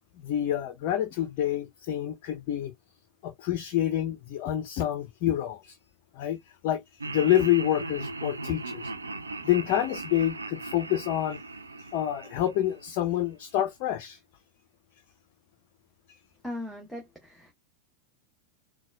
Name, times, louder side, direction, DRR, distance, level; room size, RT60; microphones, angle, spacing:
voice 1, 0.2-2.7 3.2-5.8 6.2-6.4 6.6-6.8 7.1-8.8 9.4-11.4 11.9-14.2, left 12 dB, 45° left, 0.5 m, -27 dB
Laughter, 7.0-13.2, right 3 dB, 80° right, 0.4 m, -38 dB
voice 2, 16.4-17.5, left 1 dB, ahead, 0.8 m, -38 dB
4.0 x 2.2 x 2.2 m
figure-of-eight pair, 90°, 0 cm